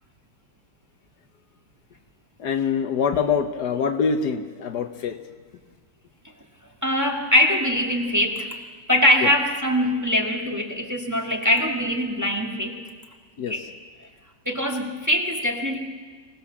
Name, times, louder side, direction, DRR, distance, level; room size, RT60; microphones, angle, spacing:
voice 1, 2.4-5.2 9.2-9.3 13.4-13.6, left 6 dB, 65° left, 8 dB, 1.4 m, -24 dB
voice 2, 6.8-8.5 8.9-12.8 13.5-13.6 14.5-15.8, left 1 dB, 10° right, 1 dB, 1.7 m, -22 dB
25.0 x 17.5 x 7.2 m, 1.5 s
omnidirectional pair, 1.9 m